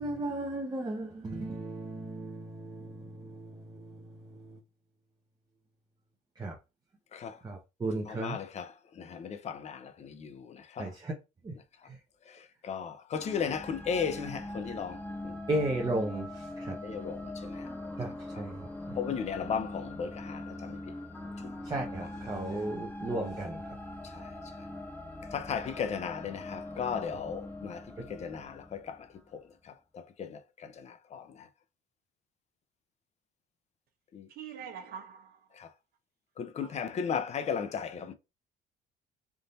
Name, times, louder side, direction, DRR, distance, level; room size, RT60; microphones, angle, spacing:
voice 1, 0.0-4.6 6.4-6.5 7.4-8.4 10.8-11.1 11.4-11.5 15.5-16.8 18.0-19.0 21.4-23.6, right 2 dB, 25° right, 0.8 m, -35 dB
voice 2, 8.2-8.7 9.0-10.4 10.8-10.9 12.6-15.0 15.2-15.3 16.8-17.5 19.0-20.8 25.3-27.8 28.1-29.0 30.2-30.3 31.1-31.2 34.1-34.2 36.4-38.1, left 6 dB, 40° left, 0.6 m, -35 dB
sound 1, 13.1-29.4, left 1 dB, 10° left, 1.0 m, -42 dB
voice 3, 34.3-35.4 36.6-36.9, right 8 dB, 65° right, 1.1 m, -44 dB
3.6 x 2.7 x 4.0 m
cardioid pair, 110°, 17 cm